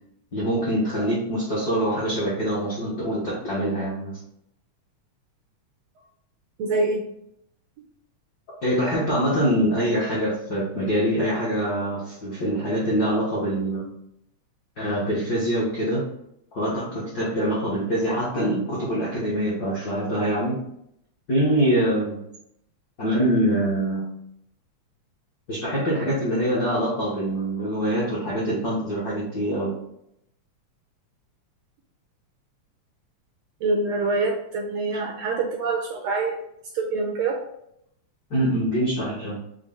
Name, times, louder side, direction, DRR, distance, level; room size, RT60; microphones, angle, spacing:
voice 1, 0.3-4.2 8.6-13.9 14.8-16.0 16.5-20.6 21.3-22.2 23.0-24.1 25.5-29.8 34.9-35.0 38.3-39.4, right 1 dB, 70° left, -8 dB, 0.9 m, -24 dB
voice 2, 6.6-7.1 21.8-22.0 33.6-36.4 36.7-37.4, right 3 dB, 80° right, 0 dB, 1.5 m, -25 dB
5.8 x 2.2 x 3.5 m, 0.75 s
omnidirectional pair, 3.3 m